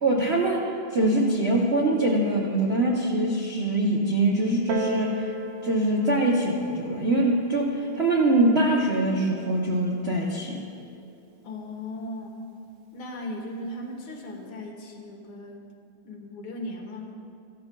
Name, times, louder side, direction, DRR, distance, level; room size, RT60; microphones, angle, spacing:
voice 1, 0.0-5.2 5.6-10.6, right 1 dB, 60° right, -2 dB, 0.6 m, -23 dB
Piano, 4.7-9.9 10.7-10.8, right 2 dB, 85° right, 1.6 m, -38 dB
voice 2, 11.4-12.4 12.9-15.6 16.0-17.0, left 1 dB, 75° left, 1 dB, 2.0 m, -37 dB
14.5 x 13.0 x 2.2 m, 2.6 s
omnidirectional pair, 2.3 m